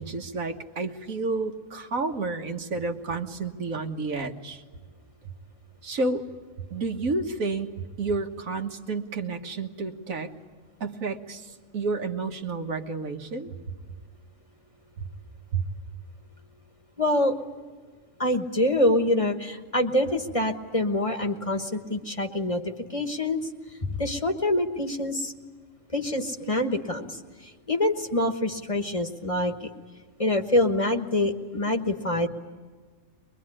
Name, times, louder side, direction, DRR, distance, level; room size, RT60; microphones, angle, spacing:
voice 1, 0.0-4.6 5.2-5.3 5.8-6.2 6.7-10.3 10.8-13.6 15.0-15.1 15.5-15.6, right 3 dB, 85° right, 5 dB, 1.9 m, -30 dB
voice 2, 17.0-17.3 18.2-22.6 22.9-23.4 23.8-25.3 25.9-27.2 27.7-29.7 30.2-32.3, left 1 dB, 25° left, 5 dB, 1.3 m, -25 dB
23.0 x 23.0 x 9.9 m, 1.4 s
omnidirectional pair, 1.4 m